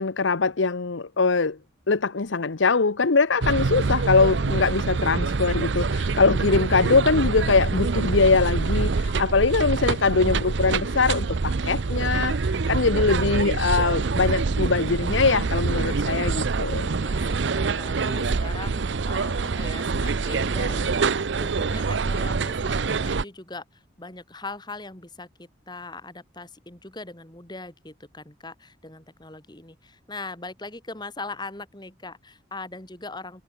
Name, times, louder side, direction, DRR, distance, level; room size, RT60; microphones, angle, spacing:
voice 1, 0.0-1.6 1.9-12.4 12.7-17.0, left 4 dB, 80° left, 0.9 m, -22 dB
sound 1, 3.4-23.2, right 4 dB, 70° right, 0.6 m, -25 dB
voice 2, 16.9-33.4, left 3 dB, 25° left, 2.5 m, -40 dB
head